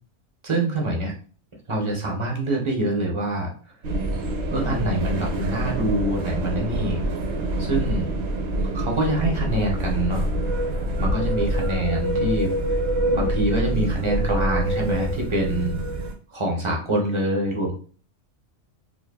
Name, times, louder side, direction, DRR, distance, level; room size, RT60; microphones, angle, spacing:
voice 1, 0.4-1.1 1.7-3.5 4.5-7.0 7.6-8.1 8.7-10.2 11.0-12.6 13.1-15.8 16.3-17.7, right 1 dB, 35° right, -1 dB, 0.5 m, -25 dB
sound 1, 3.8-16.1, right 1 dB, 70° right, 0.8 m, -26 dB
2.6 x 2.5 x 2.2 m, 0.40 s
omnidirectional pair, 1.3 m